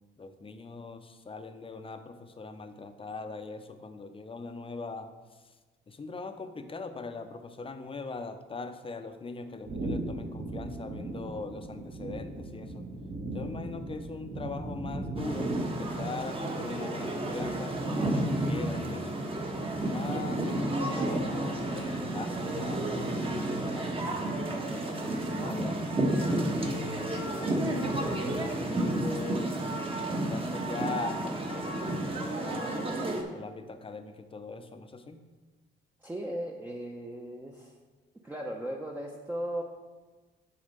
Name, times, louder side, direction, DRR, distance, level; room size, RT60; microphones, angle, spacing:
voice 1, 0.2-5.6 5.9-12.9 13.3-19.3 19.8-24.3 24.6-25.8 26.6-32.8 33.3-35.2, left 3 dB, 25° left, 9 dB, 0.7 m, -41 dB
sound 1, 9.6-16.4, right 1 dB, 50° right, 1.6 m, -38 dB
sound 2, 15.2-33.2, right 1 dB, 30° right, 1.3 m, -31 dB
voice 2, 36.0-37.8 38.2-39.6, right 1 dB, 10° right, -1 dB, 0.8 m, -37 dB
7.4 x 4.2 x 6.7 m, 1.3 s
cardioid pair, 90°, 20 cm